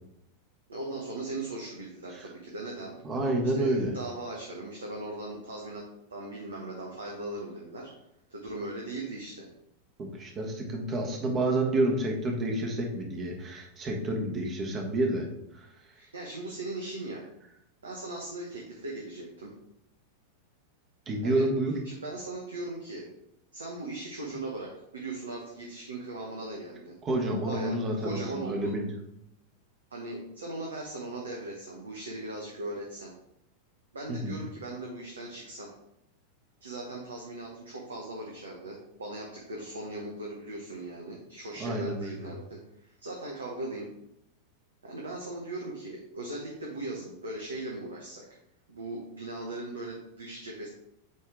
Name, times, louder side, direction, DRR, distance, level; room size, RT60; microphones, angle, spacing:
voice 1, 0.7-2.9 3.5-5.8 6.1-7.9 8.3-9.5 16.0-17.2 17.8-19.5 21.2-21.5 21.8-23.1 23.5-26.9 27.5-28.7 29.9-33.1 33.9-35.7 36.6-43.9 44.8-48.2 48.7-50.7, right 2 dB, 70° right, -2 dB, 1.0 m, -39 dB
voice 2, 3.0-3.9 10.0-15.3 21.1-21.7 27.0-28.9 34.1-34.4 41.6-42.3, right 1 dB, 25° right, 1 dB, 1.3 m, -29 dB
8.1 x 3.5 x 3.7 m, 0.79 s
figure-of-eight pair, 90°, 0 cm